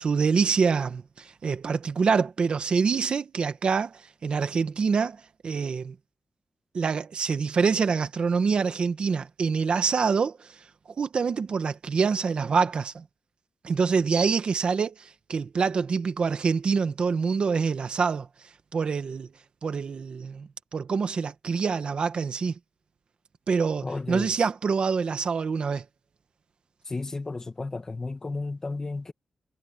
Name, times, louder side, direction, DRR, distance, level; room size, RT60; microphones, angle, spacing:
voice 1, 0.0-5.9 6.7-10.6 11.0-13.0 13.6-18.3 18.7-19.3 19.6-22.5 23.5-25.8, right 5 dB, 50° right, 1.3 m, -26 dB
voice 2, 23.8-24.3 26.8-29.1, left 3 dB, 25° left, 1.6 m, -33 dB
wide cardioid pair, 170°, 2 cm